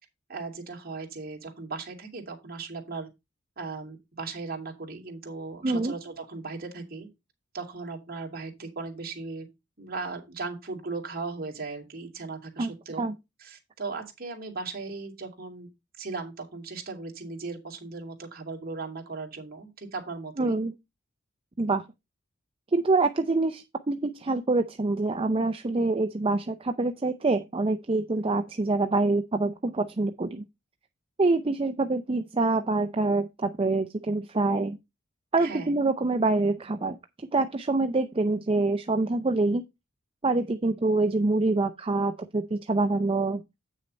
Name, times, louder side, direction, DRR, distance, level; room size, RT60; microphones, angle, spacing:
voice 1, 0.3-3.1 3.6-7.1 7.5-9.5 9.8-13.1 13.4-15.7 16.0-20.6 28.1-28.3 35.4-35.7, right 4 dB, 50° right, 2.7 m, -37 dB
voice 2, 5.6-5.9 12.6-12.7 13.0-13.1 20.4-20.7 21.6-21.8 22.7-30.4 31.2-34.8 35.3-37.0 37.3-39.6 40.2-43.4, right 3 dB, 25° right, 0.5 m, -25 dB
8.9 x 6.4 x 4.1 m
head